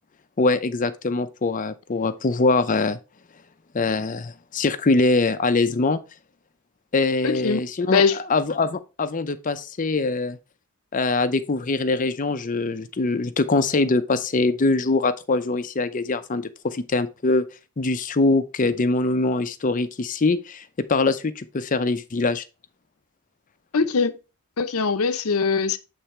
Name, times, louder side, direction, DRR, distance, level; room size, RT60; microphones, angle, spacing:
voice 1, 0.4-3.0 3.7-6.0 6.9-10.4 10.9-17.4 17.8-22.4, left 3 dB, 35° left, 0.5 m, -23 dB
voice 2, 7.2-7.6 7.9-8.2 23.7-24.1 24.6-25.8, left 5 dB, 75° left, 0.7 m, -21 dB
8.3 x 3.4 x 4.4 m
head